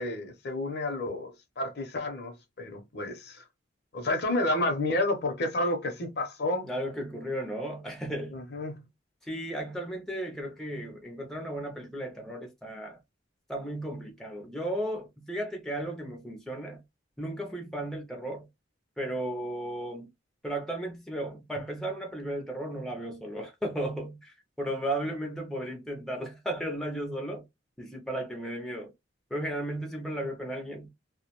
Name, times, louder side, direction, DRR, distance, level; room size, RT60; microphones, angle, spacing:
voice 1, 0.0-3.4 3.9-6.7 8.3-8.9, left 2 dB, 55° left, 0.7 m, -30 dB
voice 2, 6.6-8.4 9.2-13.0 13.5-16.8 17.2-18.5 19.0-20.1 20.4-27.5 27.8-28.9 29.3-30.9, right 1 dB, ahead, 0.5 m, -35 dB
2.2 x 2.1 x 2.9 m
head